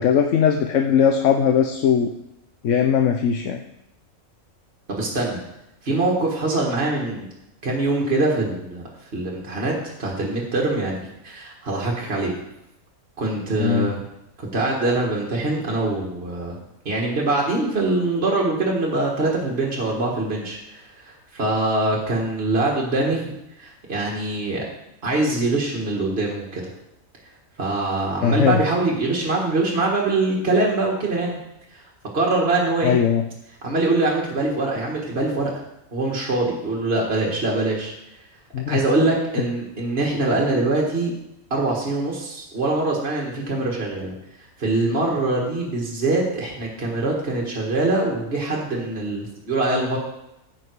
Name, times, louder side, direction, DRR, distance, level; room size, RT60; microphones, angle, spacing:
voice 1, 0.0-2.1 2.6-3.6 13.6-13.9 28.2-28.6 32.8-33.2 38.5-38.8, left 8 dB, 70° left, 4 dB, 1.0 m, -19 dB
voice 2, 4.9-5.4 5.8-7.3 7.6-8.8 9.1-9.7 10.0-11.0 11.2-12.3 13.2-14.0 14.4-16.6 16.9-24.6 25.0-26.6 27.6-31.4 31.7-31.8 32.1-33.0 33.6-35.5 35.9-37.9 38.7-41.1 41.5-44.1 44.6-50.0, right 2 dB, 45° right, -2 dB, 2.0 m, -23 dB
14.5 x 5.9 x 4.7 m, 0.86 s
omnidirectional pair, 1.4 m